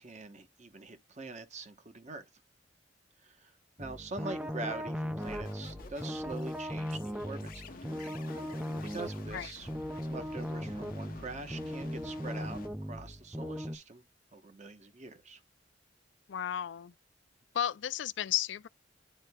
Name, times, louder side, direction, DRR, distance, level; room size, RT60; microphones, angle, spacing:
voice 1, 0.0-2.3 3.2-3.5 3.8-7.7 7.9-8.5 8.9-9.7 10.1-14.0 14.3-15.4, right 3 dB, 40° right, 1.0 m, -44 dB
sound 1, 3.8-13.8, equal, 5° right, 0.4 m, -38 dB
sound 2, 5.2-12.7, left 3 dB, 50° left, 0.8 m, -50 dB
voice 2, 16.3-16.9 17.5-18.7, left 10 dB, 75° left, 0.4 m, -33 dB
10.0 x 4.5 x 2.3 m
head